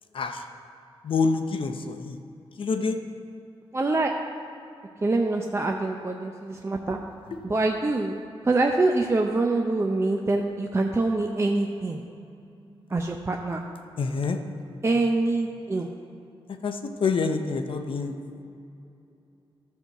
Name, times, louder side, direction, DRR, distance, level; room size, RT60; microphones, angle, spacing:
voice 1, 0.1-0.5 1.0-2.2 2.6-3.0 7.3-7.5 14.0-14.4 16.6-18.1, left 4 dB, 60° left, 6 dB, 0.8 m, -27 dB
voice 2, 3.7-4.1 5.0-7.0 7.4-8.1 8.4-12.0 12.9-13.6 14.8-15.9, right 2 dB, 25° right, 2 dB, 0.6 m, -25 dB
11.5 x 4.7 x 6.6 m, 2.7 s
cardioid pair, 85°, 10 cm